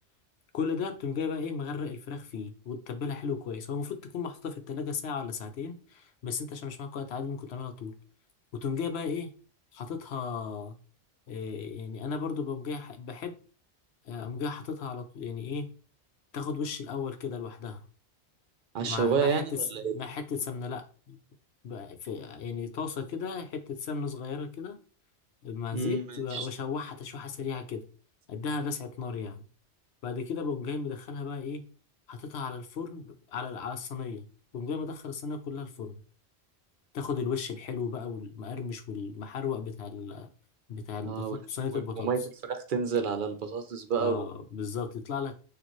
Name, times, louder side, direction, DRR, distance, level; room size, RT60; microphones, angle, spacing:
voice 1, 0.5-7.9 8.5-9.3 9.7-10.8 11.3-13.3 14.0-15.7 16.3-17.8 18.8-21.2 21.6-24.8 25.4-27.8 28.3-29.4 30.0-31.7 32.1-34.3 34.5-36.0 36.9-40.3 40.7-42.1 44.0-45.4, left 5 dB, 70° left, 1.0 m, -35 dB
voice 2, 18.7-19.9 25.7-26.5 41.0-41.4 41.7-42.2 42.5-44.3, right 5 dB, 55° right, 0.8 m, -30 dB
6.6 x 2.6 x 3.1 m
omnidirectional pair, 1.1 m